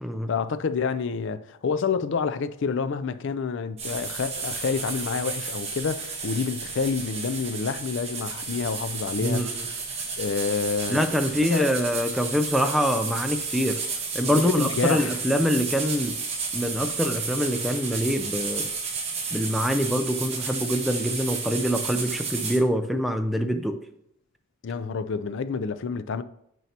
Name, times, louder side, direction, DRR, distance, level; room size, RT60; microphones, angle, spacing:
voice 1, 0.3-9.7 10.2-11.0 11.4-11.7 14.2-15.2 24.6-26.2, left 5 dB, 55° left, 0.4 m, -28 dB
sound 1, 3.8-22.6, right 4 dB, 30° right, 1.1 m, -32 dB
voice 2, 9.2-9.7 10.9-16.2 16.5-18.7 19.3-23.8, equal, ahead, 0.4 m, -25 dB
9.1 x 5.4 x 2.8 m
head